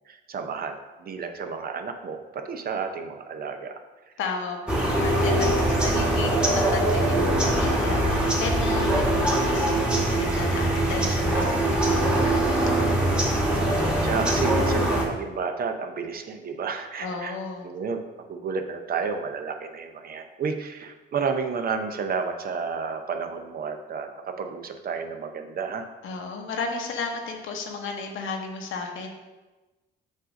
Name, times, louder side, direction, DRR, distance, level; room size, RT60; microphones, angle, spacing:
voice 1, 0.1-3.7 5.6-5.9 13.5-13.6 14.0-17.4 17.6-18.0 18.3-25.8, right 5 dB, 50° right, 6 dB, 0.6 m, -31 dB
voice 2, 4.2-13.3 17.0-17.7 26.0-29.1, left 4 dB, 80° left, 3 dB, 1.0 m, -34 dB
sound 1, 4.7-15.0, right 1 dB, 5° right, 1.3 m, -22 dB
7.3 x 2.6 x 5.1 m, 1.2 s
cardioid pair, 90°, 20 cm